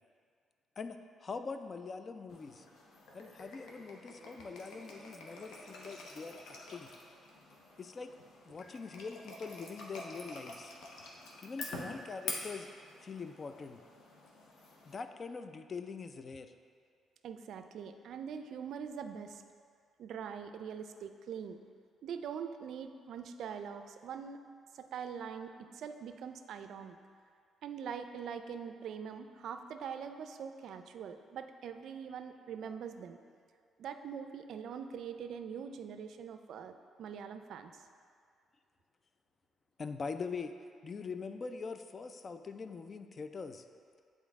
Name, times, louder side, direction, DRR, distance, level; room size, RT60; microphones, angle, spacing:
voice 1, 0.8-2.7 3.1-6.9 7.8-8.1 8.5-10.7 11.4-12.7 13.0-13.8 14.9-16.5 39.8-40.6 40.8-43.6, left 4 dB, 40° left, 9 dB, 0.4 m, -43 dB
sound 1, 2.3-14.9, left 2 dB, 75° left, 0.9 m, -47 dB
voice 2, 17.2-19.4 20.0-21.6 22.0-24.4 24.7-27.0 27.6-33.2 33.8-37.8, right 7 dB, 70° right, 8 dB, 0.3 m, -43 dB
8.3 x 4.0 x 3.5 m, 2.2 s
cardioid pair, 90°, 0 cm